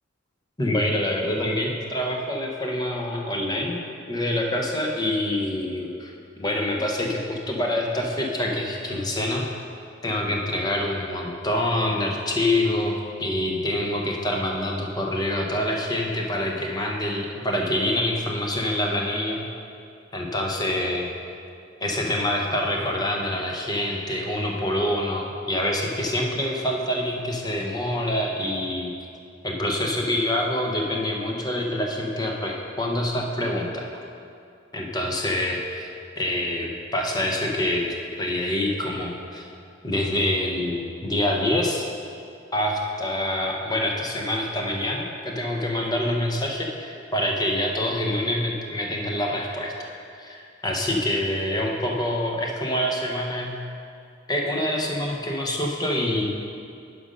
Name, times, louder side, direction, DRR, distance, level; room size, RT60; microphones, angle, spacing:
voice 1, 0.6-3.8 4.1-9.5 10.0-19.4 20.1-21.1 21.8-28.9 29.4-33.9 34.7-39.5 39.8-41.9 42.5-49.9 50.2-53.6 54.3-56.3, left 1 dB, 20° left, 0 dB, 0.9 m, -26 dB
10.0 x 5.3 x 5.3 m, 2.5 s
head